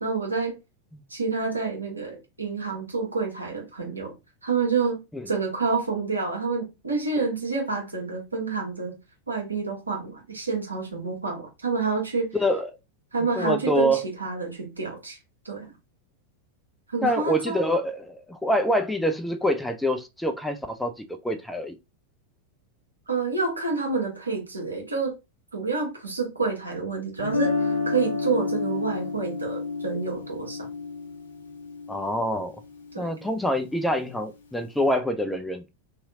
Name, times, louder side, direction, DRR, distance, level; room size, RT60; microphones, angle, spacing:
voice 1, 0.0-0.6 1.1-4.1 4.4-5.0 5.3-9.0 9.3-12.3 13.1-15.2 15.4-15.7 16.9-17.6 23.1-25.1 25.5-30.7 32.9-33.1, right 4 dB, 80° right, 1.0 m, -28 dB
voice 2, 12.3-12.7 13.4-14.0 17.0-21.7 31.9-32.5 33.0-35.7, equal, 5° left, 0.3 m, -26 dB
Guitar, 27.2-33.2, left 4 dB, 65° left, 0.6 m, -30 dB
2.7 x 2.7 x 2.3 m
figure-of-eight pair, 90°, 0 cm